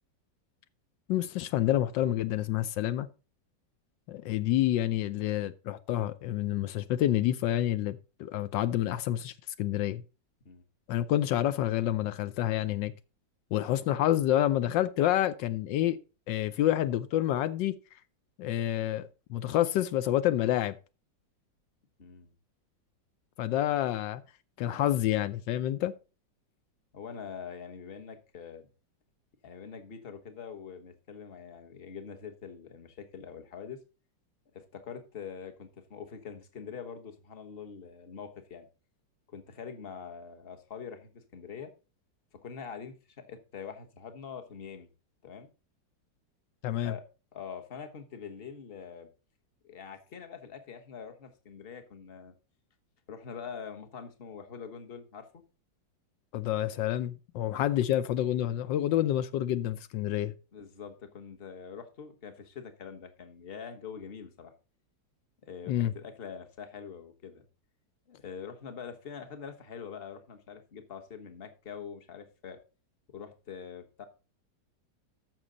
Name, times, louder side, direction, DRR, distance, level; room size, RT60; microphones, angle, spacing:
voice 1, 1.1-3.1 4.1-10.0 10.9-12.9 13.5-16.0 16.3-17.7 18.4-20.7 23.4-24.2 24.6-25.9 46.6-46.9 56.3-60.3 65.7-65.9, left 12 dB, 80° left, 1.3 m, -28 dB
voice 2, 22.0-22.4 26.9-28.7 29.4-33.8 34.5-38.7 39.3-41.7 42.4-44.9 45.2-45.5 46.8-47.0 47.3-49.1 49.6-52.3 53.1-55.4 60.5-64.5 65.5-67.4 68.1-72.6 73.1-74.0, left 6 dB, 35° left, 1.3 m, -44 dB
14.0 x 6.2 x 3.9 m
omnidirectional pair, 2.0 m